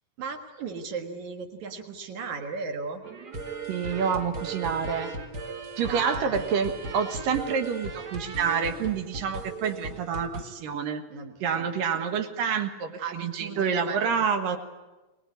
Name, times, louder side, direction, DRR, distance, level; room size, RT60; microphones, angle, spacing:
voice 1, 0.2-3.0 5.8-6.5 11.1-11.7 13.0-14.1 14.5-14.6, right 5 dB, 65° right, 5 dB, 3.0 m, -36 dB
sound 1, 3.0-10.4, right 3 dB, 45° right, 1.4 m, -37 dB
voice 2, 3.7-5.1 5.8-11.0 11.4-14.6, right 6 dB, 85° right, 7 dB, 3.3 m, -28 dB
23.5 x 20.0 x 9.4 m, 1.1 s
omnidirectional pair, 3.8 m